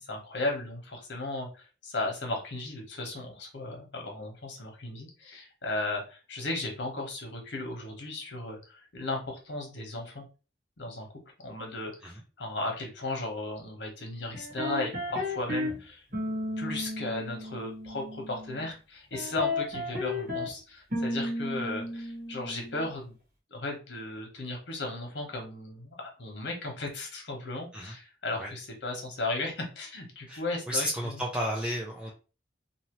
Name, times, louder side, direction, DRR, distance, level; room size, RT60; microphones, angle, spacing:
voice 1, 0.1-10.2 10.8-11.1 11.4-16.0 16.6-23.1 23.5-31.2, left 2 dB, 70° left, 1 dB, 1.1 m, -36 dB
sound 1, 14.3-15.8 16.1-18.7 19.1-20.5 20.9-22.9, left 2 dB, 50° right, 1.4 m, -33 dB
voice 2, 30.3-32.1, equal, 5° right, -3 dB, 0.5 m, -33 dB
2.8 x 2.7 x 3.0 m, 0.33 s
head